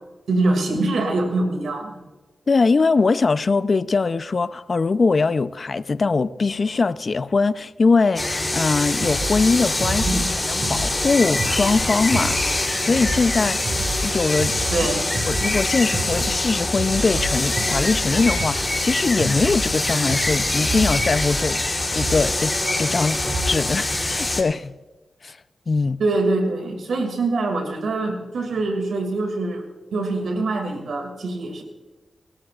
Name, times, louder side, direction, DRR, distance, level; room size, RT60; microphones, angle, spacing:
voice 1, 0.3-2.0 10.0-10.3 14.7-15.1 26.0-29.7 29.9-31.6, right 2 dB, 85° right, 2.4 m, -24 dB
voice 2, 2.5-10.1 10.5-14.5 15.3-21.6 22.0-23.2 23.4-24.7 25.2-25.4 25.7-26.0, left 4 dB, 50° left, 0.6 m, -21 dB
sound 1, 8.2-24.4, left 2 dB, 25° left, 3.3 m, -24 dB
sound 2, 9.0-23.8, right 1 dB, 60° right, 2.7 m, -31 dB
26.5 x 12.5 x 2.5 m
cardioid pair, 60°, 0 cm